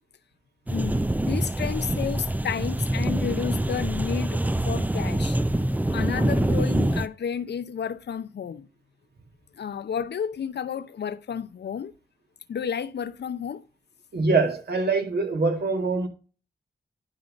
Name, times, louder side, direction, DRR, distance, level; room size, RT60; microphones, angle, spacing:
voice 1, 0.7-4.4 4.6-5.4 5.9-8.7 9.6-11.9 12.5-13.6, left 7 dB, 70° left, 0.7 m, -31 dB
sound 1, 0.7-7.1, right 1 dB, 10° right, 0.5 m, -25 dB
voice 2, 14.1-16.1, right 3 dB, 65° right, 2.1 m, -24 dB
11.0 x 3.7 x 5.1 m
supercardioid pair, 40°, 18 cm